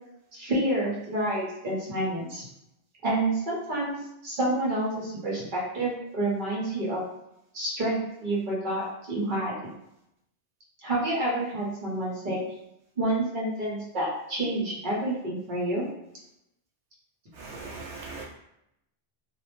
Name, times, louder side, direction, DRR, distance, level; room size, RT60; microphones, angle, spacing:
voice 1, 0.3-2.5 3.0-7.0 7.5-9.7 10.8-12.4 13.0-15.9, right 1 dB, 50° right, -5 dB, 1.0 m, -29 dB
voice 2, 17.4-18.2, right 3 dB, 85° right, -4 dB, 0.9 m, -39 dB
2.5 x 2.0 x 3.0 m, 0.82 s
omnidirectional pair, 1.1 m